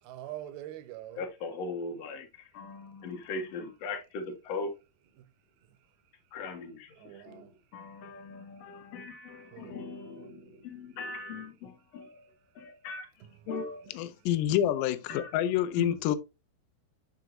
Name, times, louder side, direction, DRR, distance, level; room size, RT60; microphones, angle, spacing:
voice 1, 0.0-1.2 5.2-5.3 7.0-7.6 9.4-9.8 14.5-14.7 15.1-15.2 15.8-16.0, right 9 dB, 80° right, 2.7 m, -43 dB
voice 2, 1.2-4.7 6.3-13.1 13.5-13.9 15.1-15.3, left 3 dB, 60° left, 1.8 m, -40 dB
voice 3, 14.0-16.2, left 11 dB, 85° left, 1.9 m, -27 dB
7.4 x 6.0 x 2.6 m
omnidirectional pair, 4.5 m